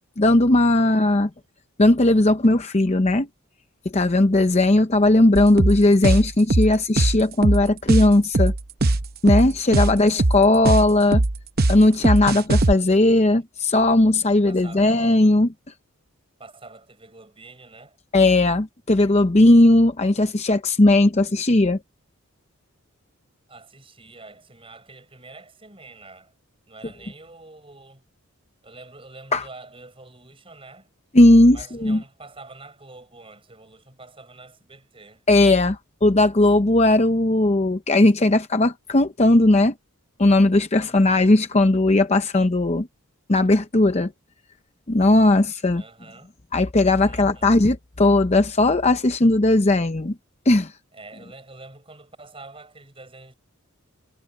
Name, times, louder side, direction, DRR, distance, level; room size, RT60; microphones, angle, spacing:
voice 1, 0.2-1.3 1.8-3.3 3.9-8.5 9.2-11.2 11.7-15.5 18.1-21.8 29.3-29.4 31.1-32.0 35.3-39.7 40.2-42.9 43.3-44.1 44.9-45.8 46.5-50.1 50.5-50.7, left 2 dB, 30° left, 0.7 m, -17 dB
sound 1, 5.4-12.7, right 2 dB, 45° right, 0.8 m, -20 dB
voice 2, 9.6-10.5 14.5-15.0 16.4-18.0 23.5-26.3 26.7-28.0 28.6-30.9 31.5-35.2 40.8-41.4 45.7-46.3 47.1-47.7 50.9-53.3, right 3 dB, 25° right, 7.2 m, -46 dB
head